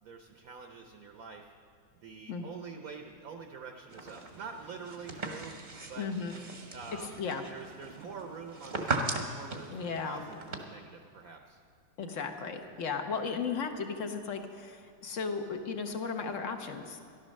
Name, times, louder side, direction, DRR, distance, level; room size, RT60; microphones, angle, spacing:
voice 1, 0.0-1.5 1.9-5.6 5.9-6.1 6.7-7.2 7.5-11.6, right 5 dB, 60° right, 4 dB, 1.0 m, -46 dB
sound 1, 3.9-10.6, right 3 dB, 30° right, 0.9 m, -39 dB
voice 2, 6.0-6.3 7.2-7.4 9.7-10.2 12.0-17.0, left 5 dB, 50° left, 6 dB, 1.1 m, -35 dB
13.5 x 11.5 x 6.4 m, 2.2 s
omnidirectional pair, 2.1 m